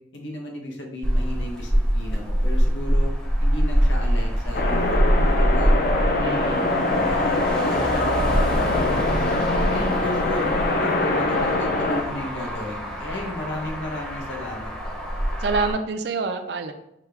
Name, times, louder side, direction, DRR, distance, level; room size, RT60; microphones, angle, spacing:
voice 1, 0.1-3.1 3.4-6.4 6.9-10.5 10.8-14.9, left 1 dB, 90° left, 0 dB, 1.0 m, -34 dB
Motor vehicle (road), 1.0-15.7, equal, 5° left, 0.7 m, -24 dB
sound 1, 4.5-12.0, left 2 dB, 50° left, 0.5 m, -23 dB
voice 2, 6.2-6.8 15.4-16.7, right 4 dB, 65° right, 7 dB, 0.4 m, -27 dB
5.7 x 2.3 x 3.3 m, 0.83 s
head